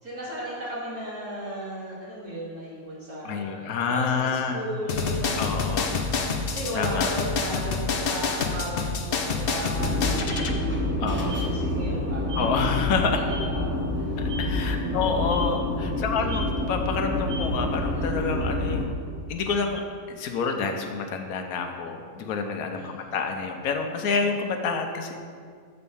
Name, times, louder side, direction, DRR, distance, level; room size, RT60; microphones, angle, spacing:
voice 1, 0.0-5.6 6.4-14.2 15.9-16.5 22.7-23.1, right 1 dB, 85° right, -8 dB, 3.2 m, -36 dB
voice 2, 3.2-4.6 5.4-5.9 6.7-7.1 11.0-11.4 12.4-13.2 14.2-18.9 19.3-19.8 20.1-25.2, left 5 dB, 85° left, 4 dB, 1.2 m, -28 dB
sound 1, 4.9-10.5, left 4 dB, 50° left, 0.7 m, -27 dB
sound 2, 9.8-18.8, left 1 dB, 10° right, 0.7 m, -27 dB
8.2 x 4.3 x 7.0 m, 2.1 s
omnidirectional pair, 1.5 m